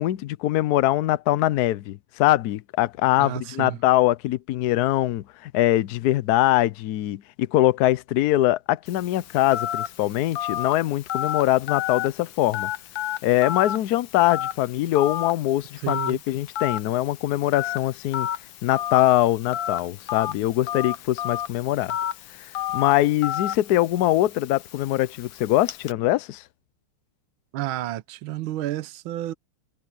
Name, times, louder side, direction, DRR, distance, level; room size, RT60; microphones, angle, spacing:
voice 1, 0.0-12.7 13.2-18.3 18.6-21.9 22.7-26.4, left 15 dB, 85° left, 0.8 m, -22 dB
voice 2, 3.2-3.8 15.8-16.2 27.5-29.3, right 15 dB, 70° right, 1.6 m, -31 dB
Telephone, 8.9-25.9, left 11 dB, 70° left, 1.6 m, -32 dB
omnidirectional pair, 2.4 m